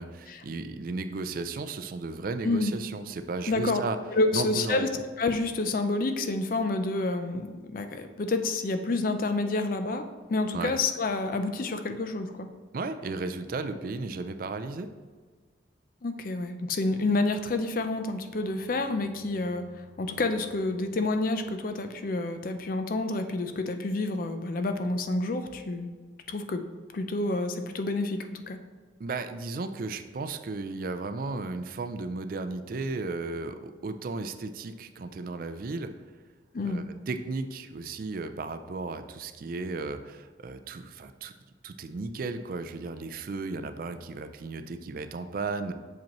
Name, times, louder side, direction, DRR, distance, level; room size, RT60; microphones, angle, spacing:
voice 1, 0.0-4.0 4.3-4.8 10.5-10.7 12.7-14.9 29.0-35.9 36.6-41.3 41.6-45.7, right 3 dB, 50° right, 9 dB, 0.4 m, -34 dB
voice 2, 2.4-2.7 3.5-3.8 4.1-4.9 5.2-12.5 16.0-25.9 26.3-26.6 26.9-28.6 36.5-36.8, left 2 dB, 50° left, 8 dB, 0.4 m, -29 dB
sound 1, 16.9-21.6, right 1 dB, 25° left, 1.4 m, -59 dB
6.9 x 5.2 x 3.0 m, 1.5 s
head